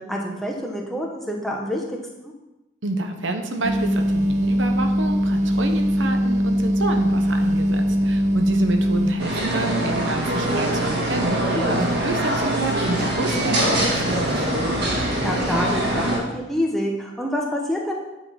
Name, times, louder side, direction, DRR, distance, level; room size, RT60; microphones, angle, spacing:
voice 1, 0.0-2.3 11.5-11.7 14.9-17.9, equal, ahead, -1 dB, 1.2 m, -27 dB
voice 2, 2.8-14.5, right 2 dB, 90° right, 5 dB, 1.0 m, -28 dB
sound 1, 3.6-9.1, equal, 40° right, 0.5 m, -21 dB
sound 2, 9.2-16.2, right 1 dB, 60° right, 2.2 m, -23 dB
9.7 x 4.8 x 5.9 m, 1.0 s
head